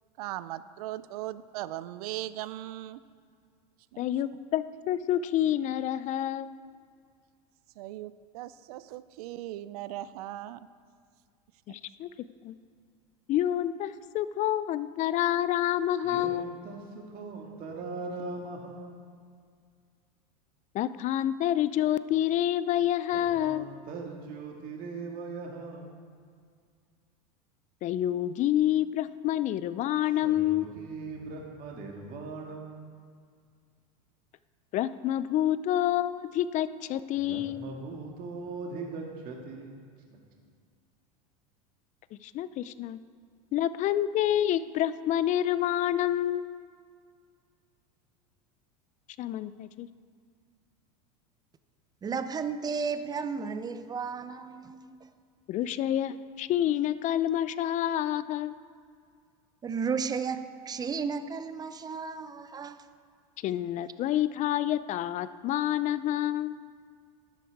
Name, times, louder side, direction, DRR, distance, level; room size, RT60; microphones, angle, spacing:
voice 1, 0.2-3.0 3.9-4.0 7.8-10.7 11.7-11.8, right 14 dB, 75° right, 0.5 m, -38 dB
voice 2, 4.0-6.6 11.7-12.1 12.4-12.6 13.3-16.5 20.7-23.7 27.8-30.7 34.7-37.6 42.1-43.0 43.5-46.5 49.2-49.9 55.5-58.5 63.4-66.5, left 12 dB, 40° left, 0.4 m, -28 dB
voice 3, 16.0-19.1 23.3-26.1 30.2-33.0 37.2-39.9, right 3 dB, 45° right, 2.0 m, -40 dB
voice 4, 52.0-55.1 59.6-62.9, right 5 dB, 20° right, 0.6 m, -33 dB
11.5 x 10.5 x 4.7 m
hypercardioid pair, 105°, 20 cm